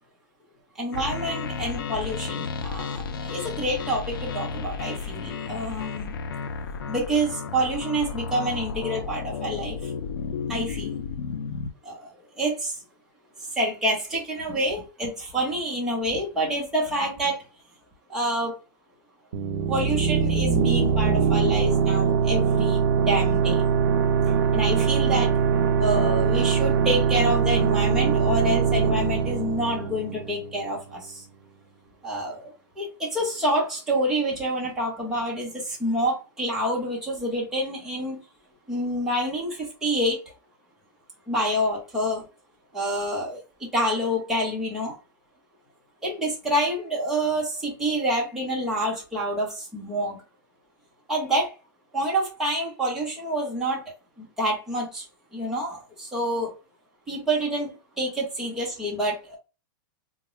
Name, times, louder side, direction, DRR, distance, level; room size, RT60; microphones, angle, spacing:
voice 1, 0.8-6.1 6.9-9.9 10.5-11.0 11.8-12.1 12.4-12.7 13.6-17.4 18.1-18.5 19.7-23.6 24.5-25.3 25.8-31.2 32.0-38.2 38.7-40.2 41.3-42.2 42.7-43.4 43.7-44.9 46.0-50.2 51.1-51.5 51.9-53.9 54.2-55.0 55.3-56.5 57.1-59.4, right 1 dB, 5° right, 1.0 m, -27 dB
sound 1, 0.9-11.7, left 5 dB, 80° left, 0.5 m, -33 dB
sound 2, 19.3-30.7, right 6 dB, 65° right, 0.5 m, -22 dB
3.7 x 2.1 x 3.1 m
supercardioid pair, 180°, 12 cm